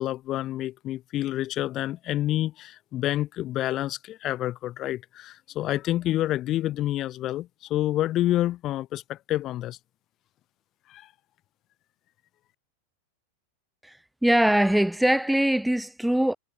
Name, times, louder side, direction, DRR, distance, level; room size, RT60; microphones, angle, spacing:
voice 1, 0.0-9.8 10.9-11.1, left 14 dB, 35° left, 6.9 m, -28 dB
voice 2, 14.2-16.3, right 1 dB, ahead, 2.2 m, -22 dB
figure-of-eight pair, 90°, 0 cm